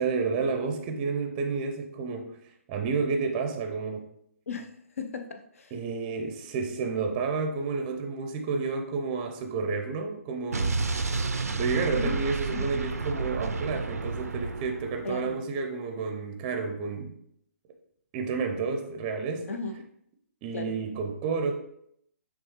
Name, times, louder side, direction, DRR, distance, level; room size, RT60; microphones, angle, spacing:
voice 1, 0.0-2.4 2.7-4.1 5.7-10.8 11.6-17.2 18.1-19.5 20.4-21.5, right 4 dB, 25° right, 4 dB, 0.5 m, -30 dB
voice 2, 4.5-5.7 11.9-12.7 15.0-15.4 19.5-19.9 20.5-20.8, left 4 dB, 65° left, 6 dB, 0.6 m, -37 dB
Explosion, 10.5-15.3, right 3 dB, 80° right, 0.4 m, -30 dB
6.3 x 2.4 x 2.9 m, 0.72 s
figure-of-eight pair, 135°, 8 cm